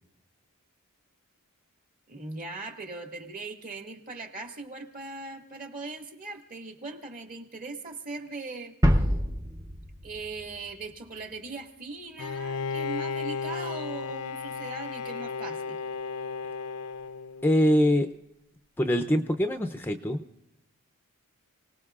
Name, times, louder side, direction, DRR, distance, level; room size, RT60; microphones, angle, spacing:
voice 1, 2.1-8.7 10.0-15.8, right 3 dB, 40° right, 2 dB, 2.0 m, -39 dB
sound 1, 8.8-11.5, equal, 15° right, 0.8 m, -27 dB
Bowed string instrument, 12.2-17.8, left 5 dB, 80° left, 0.6 m, -34 dB
voice 2, 17.4-18.1 18.8-20.2, equal, 10° left, 6 dB, 0.5 m, -23 dB
30.0 x 19.0 x 2.4 m, 0.86 s
head